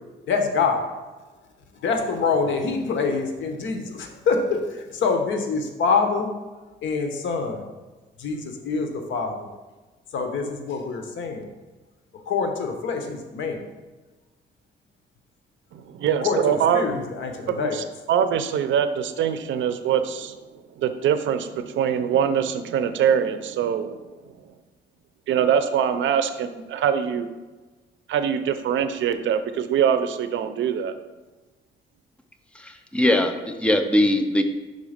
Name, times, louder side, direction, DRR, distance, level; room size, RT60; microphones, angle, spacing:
voice 1, 0.3-0.9 1.8-6.3 6.8-7.6 8.2-9.3 10.1-11.5 12.3-13.6 16.2-17.8, left 4 dB, 75° left, 5 dB, 0.9 m, -25 dB
voice 2, 15.7-16.8 17.5-20.4 20.8-24.0 25.3-27.3 28.1-30.9, right 8 dB, 75° right, 10 dB, 0.5 m, -23 dB
voice 3, 32.9-34.4, left 1 dB, 5° left, 6 dB, 0.5 m, -20 dB
5.4 x 4.0 x 5.0 m, 1.2 s
cardioid pair, 130°, 20 cm